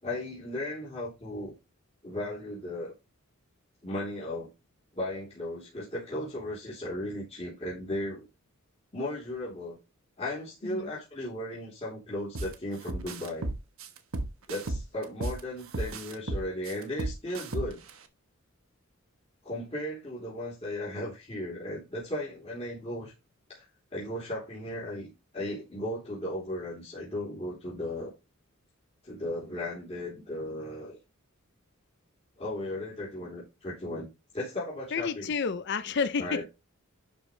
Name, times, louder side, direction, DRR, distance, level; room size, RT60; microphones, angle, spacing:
voice 1, 0.0-1.5 2.0-2.9 3.8-4.5 4.9-8.3 8.9-9.8 10.2-13.5 14.5-17.8 19.4-23.1 23.5-28.1 29.0-31.0 32.4-34.1 34.3-35.3 36.2-36.4, left 1 dB, 30° left, 3.3 m, -36 dB
sound 1, 12.3-12.5 12.9-15.4 15.7-17.9, right 2 dB, 80° right, 1.2 m, -33 dB
voice 2, 34.9-36.4, left 5 dB, 55° left, 0.6 m, -30 dB
11.0 x 4.4 x 3.2 m
head